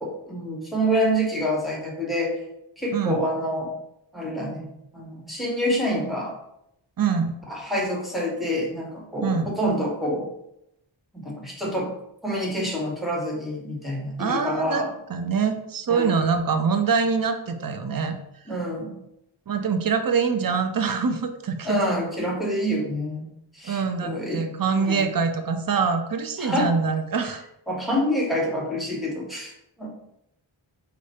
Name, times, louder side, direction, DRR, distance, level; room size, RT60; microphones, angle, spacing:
voice 1, 0.0-2.3 2.8-3.7 4.1-6.3 7.5-10.3 11.1-11.9 12.2-14.9 15.9-16.1 18.5-19.0 21.6-23.3 23.5-25.0 26.4-26.7 27.7-29.5 29.8-29.9, equal, ahead, -2 dB, 1.2 m, -27 dB
voice 2, 7.0-7.3 9.2-9.5 14.2-18.2 19.5-21.8 23.6-27.4, right 5 dB, 45° right, 7 dB, 0.5 m, -24 dB
4.9 x 2.1 x 4.2 m, 0.79 s
wide cardioid pair, 40°, 48 cm